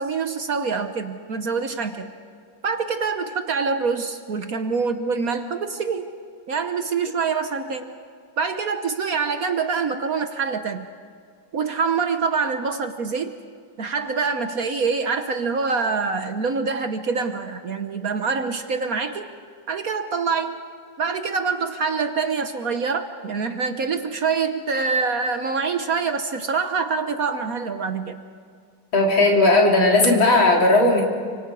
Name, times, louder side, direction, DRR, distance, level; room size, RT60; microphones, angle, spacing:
voice 1, 0.0-2.1 2.6-6.1 6.5-8.0 8.4-10.9 11.5-13.3 13.8-19.3 19.7-20.6 21.0-28.2, right 5 dB, 55° right, 7 dB, 1.3 m, -25 dB
voice 2, 28.9-31.0, left 2 dB, 85° left, -1 dB, 4.1 m, -16 dB
29.5 x 25.5 x 4.8 m, 2.1 s
omnidirectional pair, 2.1 m